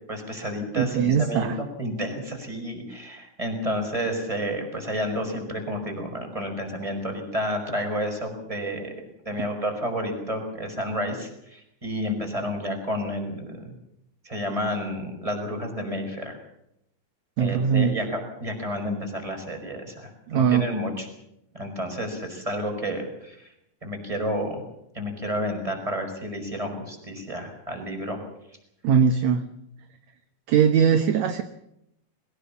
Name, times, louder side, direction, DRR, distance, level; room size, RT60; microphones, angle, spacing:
voice 1, 0.1-8.9 9.2-13.7 14.2-16.4 17.4-21.1 21.5-23.5 23.8-24.6 24.9-28.2, equal, 10° right, 3 dB, 5.5 m, -30 dB
voice 2, 0.7-1.6 17.4-18.0 20.3-20.7 28.8-29.4 30.5-31.4, right 7 dB, 65° right, 8 dB, 1.9 m, -20 dB
22.0 x 19.0 x 7.3 m, 0.79 s
omnidirectional pair, 4.3 m